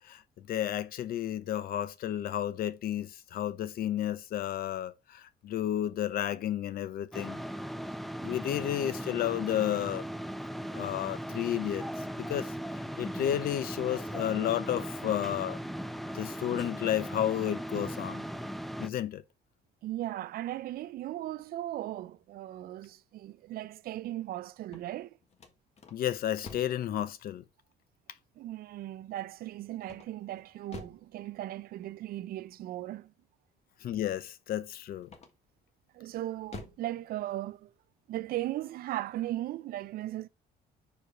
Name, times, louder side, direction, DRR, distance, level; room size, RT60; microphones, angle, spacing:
voice 1, 0.0-7.4 8.2-10.0 10.7-12.5 13.0-15.6 16.1-18.3 18.8-19.2 25.9-27.4 33.8-35.1, left 11 dB, 60° left, 0.7 m, -32 dB
sound 1, 7.1-18.9, equal, ahead, 0.4 m, -38 dB
voice 2, 19.8-25.2 28.4-33.1 35.9-37.7 38.1-40.3, right 14 dB, 60° right, 0.5 m, -37 dB
sound 2, 24.5-26.9 29.8-31.1 35.0-35.6 36.1-36.9, left 5 dB, 40° left, 1.4 m, -48 dB
5.2 x 4.6 x 4.5 m
cardioid pair, 110°, 17 cm